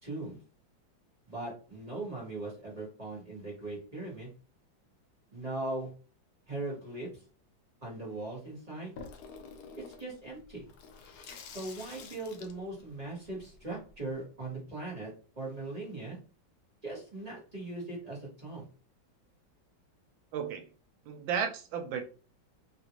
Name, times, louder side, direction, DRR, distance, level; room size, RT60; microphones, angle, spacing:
voice 1, 0.0-0.4 1.3-4.3 5.3-5.9 6.5-7.2 7.8-8.9 9.8-10.6 11.5-16.2 16.8-18.7, right 2 dB, 25° right, -5 dB, 1.2 m, -39 dB
Water tap faucet / Sink (filling or washing), 9.0-14.2, left 5 dB, 75° left, 0.9 m, -49 dB
voice 2, 20.3-20.7 21.1-22.1, right 7 dB, 80° right, 6 dB, 1.3 m, -33 dB
3.2 x 2.5 x 2.9 m, 0.38 s
omnidirectional pair, 2.1 m